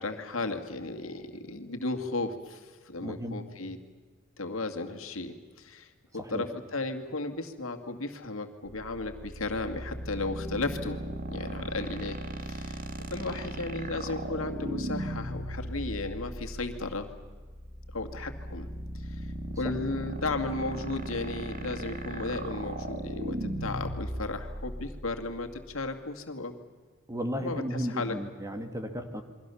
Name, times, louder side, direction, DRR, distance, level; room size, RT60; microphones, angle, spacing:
voice 1, 0.0-3.8 4.4-11.0 11.3-12.8 13.1-17.1 17.9-18.7 18.9-26.5 27.4-28.2, left 2 dB, 75° left, 5 dB, 2.3 m, -35 dB
voice 2, 3.0-3.4 6.2-6.5 27.1-29.2, equal, 15° right, 7 dB, 2.1 m, -34 dB
sound 1, 8.7-25.9, right 1 dB, 45° right, 1.9 m, -37 dB
28.5 x 23.0 x 7.1 m, 1.5 s
head